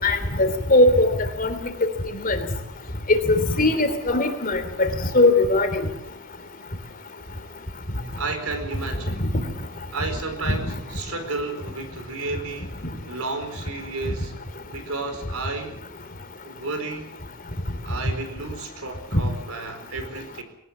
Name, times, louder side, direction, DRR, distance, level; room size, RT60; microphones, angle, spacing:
voice 1, 0.0-1.1 1.4-1.9 2.2-2.4 3.1-4.9 5.1-5.9 9.2-9.3 10.5-10.6 19.1-19.2, left 2 dB, 40° left, 8 dB, 3.2 m, -20 dB
voice 2, 8.2-9.2 9.9-12.7 13.1-14.4 14.7-15.8 16.4-17.1 17.8-20.4, right 3 dB, 75° right, 7 dB, 4.6 m, -32 dB
22.0 x 18.5 x 7.3 m, 0.80 s
head